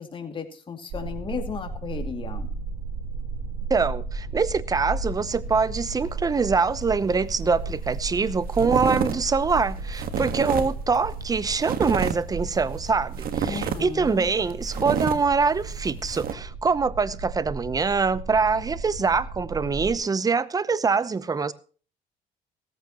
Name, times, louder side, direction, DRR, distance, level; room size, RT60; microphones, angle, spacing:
voice 1, 0.0-2.5 13.4-14.3, left 6 dB, 30° left, 2.5 m, -34 dB
sound 1, 0.9-19.9, right 3 dB, 85° right, 4.8 m, -35 dB
voice 2, 3.7-21.5, right 4 dB, 20° right, 0.8 m, -24 dB
sound 2, 7.6-7.7 7.9-8.2 8.5-16.3, right 8 dB, 60° right, 1.6 m, -30 dB
16.5 x 14.0 x 3.0 m
cardioid pair, 110°, 17 cm